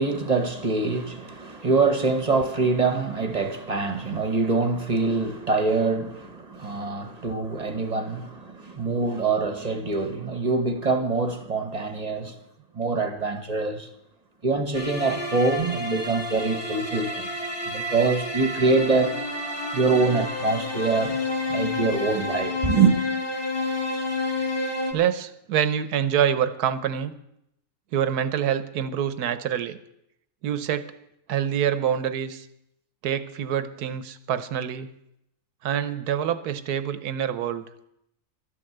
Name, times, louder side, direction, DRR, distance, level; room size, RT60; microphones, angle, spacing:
voice 1, 0.0-12.4 12.7-13.9 14.4-17.3 17.7-19.2 19.7-21.2 21.5-22.9, right 3 dB, 30° right, 1.1 m, -24 dB
sound 1, 14.7-24.9, left 2 dB, 15° left, 1.7 m, -30 dB
voice 2, 24.9-27.1 27.9-29.8 30.4-30.9 31.3-32.5 33.0-34.9 35.6-37.6, right 9 dB, 90° right, 1.4 m, -26 dB
12.5 x 10.0 x 7.8 m
omnidirectional pair, 1.6 m